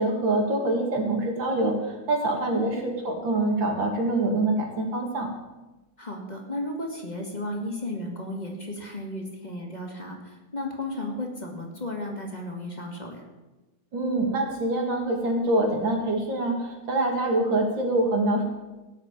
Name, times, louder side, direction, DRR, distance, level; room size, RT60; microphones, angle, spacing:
voice 1, 0.0-5.3 13.9-18.5, right 2 dB, 80° right, 2 dB, 3.1 m, -25 dB
voice 2, 6.0-13.2, left 1 dB, 20° left, 0 dB, 2.4 m, -34 dB
17.0 x 6.5 x 8.9 m, 1.1 s
omnidirectional pair, 2.0 m